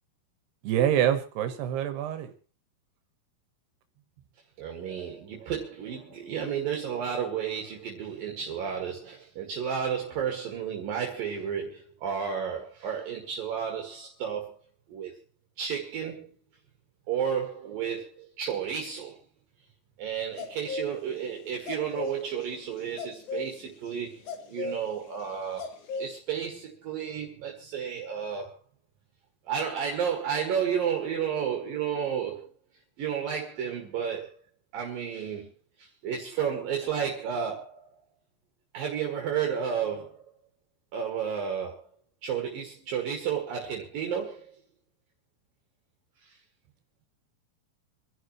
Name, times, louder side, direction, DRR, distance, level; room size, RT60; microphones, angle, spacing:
voice 1, 0.6-2.3, right 10 dB, 85° right, 3.4 m, -26 dB
voice 2, 4.6-14.6 14.9-15.1 15.6-16.3 17.1-19.2 20.0-28.5 29.4-32.5 33.0-34.3 34.7-35.5 35.8-37.9 38.7-40.3 40.9-41.9 42.2-44.6, right 7 dB, 65° right, 3.5 m, -32 dB
sound 1, 20.4-21.0 21.2-21.3 21.5-26.2, left 3 dB, 55° left, 2.9 m, -36 dB
27.5 x 11.5 x 3.1 m
omnidirectional pair, 4.6 m